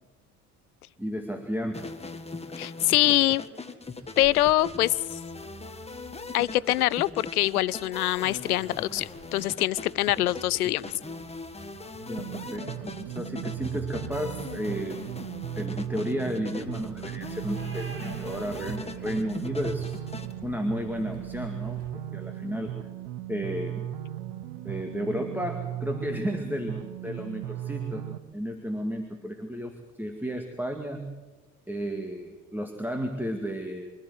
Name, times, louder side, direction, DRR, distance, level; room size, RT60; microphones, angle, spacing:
voice 1, 1.0-1.9 12.0-15.0 15.6-19.9 20.4-21.8 22.1-22.7 23.3-23.9 24.6-28.0 28.3-31.1 31.7-33.9, equal, 5° right, 4 dB, 2.2 m, -33 dB
sound 1, 1.7-20.3, left 3 dB, 15° left, 1.8 m, -40 dB
voice 2, 2.6-3.4 4.2-5.0 6.3-10.9, left 15 dB, 80° left, 23 dB, 0.6 m, -24 dB
sound 2, 3.8-21.9, right 1 dB, 30° right, 3.9 m, -49 dB
sound 3, 12.2-28.2, right 12 dB, 65° right, 1.3 m, -37 dB
25.5 x 13.5 x 7.9 m, 1.2 s
figure-of-eight pair, 60°, 44 cm